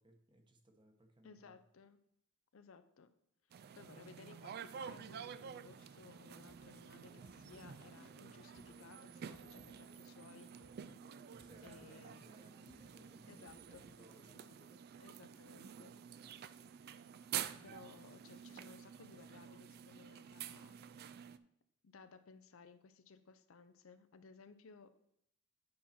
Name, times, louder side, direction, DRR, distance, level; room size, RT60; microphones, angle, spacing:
voice 1, 0.0-1.6 11.1-14.6 16.2-16.7, right 1 dB, 25° right, 5 dB, 1.0 m, -64 dB
voice 2, 1.2-2.0 2.5-3.1 3.8-10.5 11.6-12.3 13.3-13.9 14.3-14.5 15.0-16.0 17.6-20.8 21.8-24.9, left 4 dB, 75° left, 11 dB, 0.6 m, -59 dB
sound 1, 3.5-21.4, right 9 dB, 50° right, 0.3 m, -50 dB
sound 2, 6.5-14.7, left 2 dB, 30° left, 1.0 m, -66 dB
8.5 x 5.5 x 4.3 m, 0.74 s
head